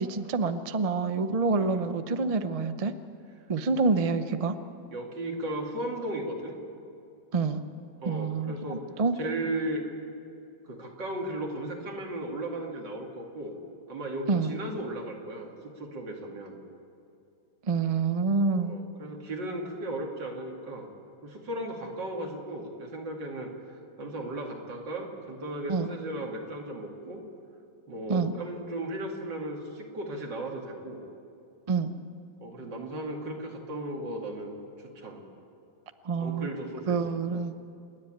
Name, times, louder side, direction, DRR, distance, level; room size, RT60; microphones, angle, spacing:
voice 1, 0.0-2.9 3.5-4.6 7.3-7.6 8.1-9.2 14.3-14.5 17.7-18.7 25.7-25.9 28.1-28.3 31.7-31.9 36.0-36.5 36.9-37.5, right 4 dB, 60° right, 10 dB, 0.3 m, -27 dB
voice 2, 4.9-6.6 8.0-8.8 9.2-9.9 10.7-13.6 13.9-16.6 18.6-20.9 21.2-23.5 24.0-27.2 27.9-31.0 32.4-35.2 36.2-37.2, right 1 dB, 75° right, 1 dB, 3.0 m, -36 dB
28.5 x 10.5 x 8.8 m, 2.6 s
omnidirectional pair, 1.9 m